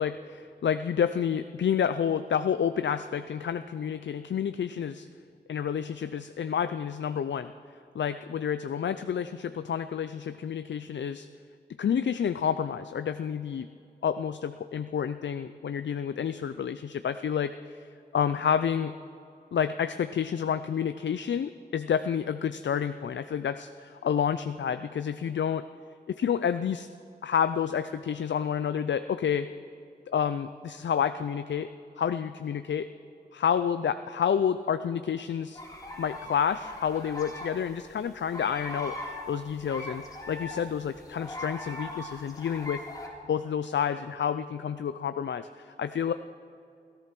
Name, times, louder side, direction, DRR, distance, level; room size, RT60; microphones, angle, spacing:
voice 1, 0.0-5.1 5.5-7.5 7.9-11.3 11.8-13.7 14.0-19.0 19.5-25.6 26.1-26.9 27.2-29.5 30.1-31.7 32.0-32.9 33.3-35.6 36.0-42.8 43.3-46.1, left 8 dB, 90° left, 11 dB, 0.4 m, -29 dB
sound 1, 35.5-43.1, left 1 dB, 20° left, 3.5 m, -41 dB
16.5 x 14.0 x 6.0 m, 2.6 s
wide cardioid pair, 65°, 18 cm